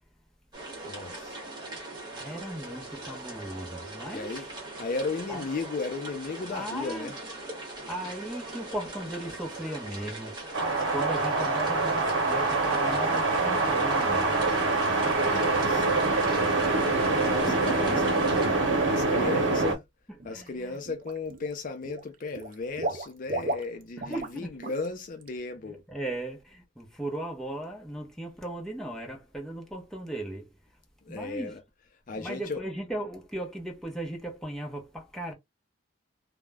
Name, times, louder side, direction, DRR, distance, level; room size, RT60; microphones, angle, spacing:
sound 1, 0.5-18.5, right 2 dB, 20° right, 1.0 m, -41 dB
voice 1, 0.8-1.4 4.1-4.5 4.8-7.2 15.2-18.0 18.8-19.8 20.2-25.8 31.0-31.6 32.1-32.6, left 3 dB, 45° left, 0.4 m, -35 dB
voice 2, 2.1-4.5 5.3-5.4 6.5-7.1 7.9-10.3 10.9-14.4 17.5-19.7 20.3-20.8 24.1-24.6 25.7-30.5 31.1-31.6 32.1-35.3, right 1 dB, 5° left, 0.6 m, -37 dB
sound 2, 10.5-19.8, right 3 dB, 85° right, 0.8 m, -25 dB
Water / Liquid, 20.2-20.5 20.9-21.5 21.8-24.4 24.6-24.9 25.2-25.3, right 2 dB, 45° right, 0.4 m, -35 dB
2.3 x 2.0 x 3.3 m
head